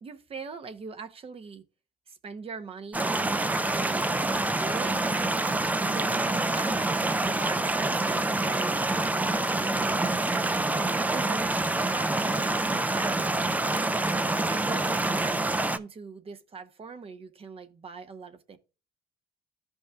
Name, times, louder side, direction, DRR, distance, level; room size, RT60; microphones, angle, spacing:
voice 1, 0.0-1.6 2.1-4.1 4.5-5.0 5.9-9.1 9.3-10.1 11.1-11.5 11.9-13.3 13.5-14.0 14.4-15.4 15.7-18.6, right 5 dB, 35° right, 0.9 m, -42 dB
sound 1, 2.9-15.8, right 2 dB, 10° right, 0.4 m, -26 dB
14.0 x 5.3 x 2.4 m
cardioid pair, 110°, 17 cm